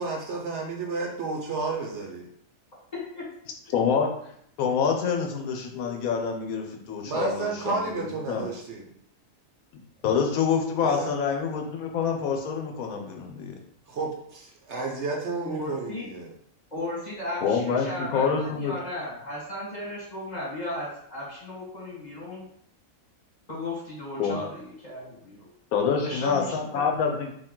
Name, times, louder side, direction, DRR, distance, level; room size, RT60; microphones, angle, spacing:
voice 1, 0.0-2.3 7.1-8.9 10.8-11.1 13.9-16.3, right 3 dB, 60° right, 0 dB, 1.0 m, -31 dB
voice 2, 3.7-4.1 4.6-8.5 10.0-13.6 17.4-18.7 24.2-24.4 25.7-27.3, left 6 dB, 80° left, 3 dB, 1.2 m, -26 dB
voice 3, 15.4-16.0 16.7-22.5 23.5-25.5 26.0-26.8, left 1 dB, 30° left, -5 dB, 1.6 m, -35 dB
4.6 x 2.8 x 3.7 m, 0.68 s
omnidirectional pair, 1.5 m